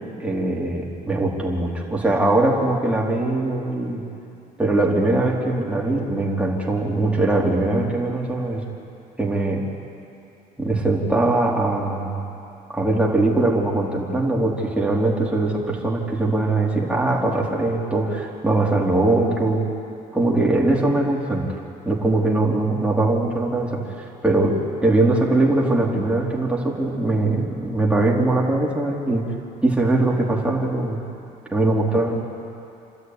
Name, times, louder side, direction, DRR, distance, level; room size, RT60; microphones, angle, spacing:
voice 1, 0.2-4.0 4.6-8.6 9.2-9.6 10.6-12.2 12.7-19.6 20.1-29.2 29.6-31.0 31.5-32.2, right 2 dB, 5° right, -3 dB, 3.9 m, -21 dB
28.5 x 13.0 x 9.7 m, 2.7 s
cardioid pair, 110°, 17 cm